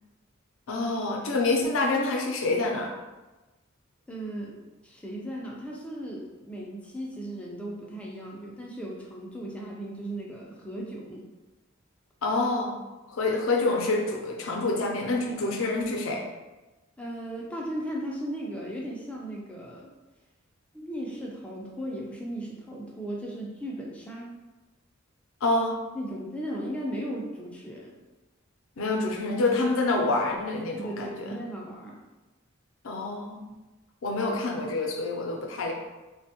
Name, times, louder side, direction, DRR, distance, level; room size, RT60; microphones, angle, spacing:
voice 1, 0.7-2.9 12.2-12.8 13.1-16.3 25.4-25.8 28.8-31.4 32.8-33.4 34.0-35.7, left 2 dB, 75° left, 1 dB, 0.5 m, -27 dB
voice 2, 4.1-4.6 4.8-11.3 17.0-19.9 20.7-24.4 25.9-28.0 30.7-32.0, right 1 dB, 5° left, -3 dB, 0.4 m, -36 dB
3.3 x 2.2 x 2.7 m, 1.1 s
head